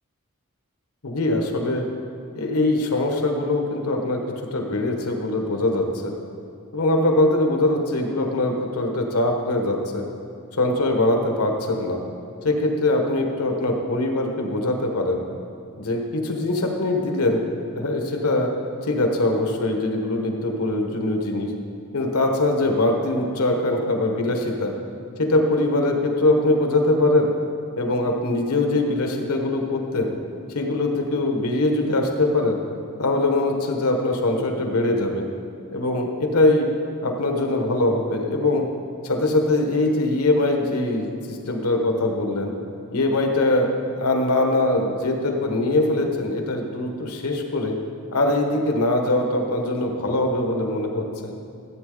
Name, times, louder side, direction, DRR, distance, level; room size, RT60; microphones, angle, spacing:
voice 1, 1.0-1.8 2.3-4.2 4.5-6.1 6.7-10.1 10.6-12.0 12.4-15.2 15.8-18.5 18.8-21.5 21.9-24.7 25.2-27.3 27.8-30.1 30.5-32.6 33.0-35.3 35.7-36.7 37.0-38.7 39.0-42.5 42.9-43.7 44.0-47.7 48.1-51.3, left 2 dB, 85° left, 3 dB, 1.3 m, -22 dB
14.0 x 8.5 x 3.9 m, 2.6 s
head